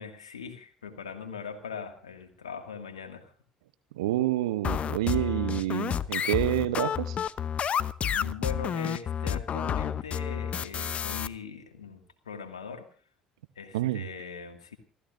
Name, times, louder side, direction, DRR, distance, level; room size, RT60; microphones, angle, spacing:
voice 1, 0.0-3.3 8.1-12.8 13.6-14.8, left 5 dB, 80° left, 2.1 m, -40 dB
voice 2, 3.9-7.2 13.7-14.1, right 14 dB, 75° right, 0.9 m, -28 dB
sound 1, 4.6-11.3, left 8 dB, 40° left, 0.8 m, -30 dB
28.5 x 14.0 x 2.6 m
figure-of-eight pair, 55°, 3 cm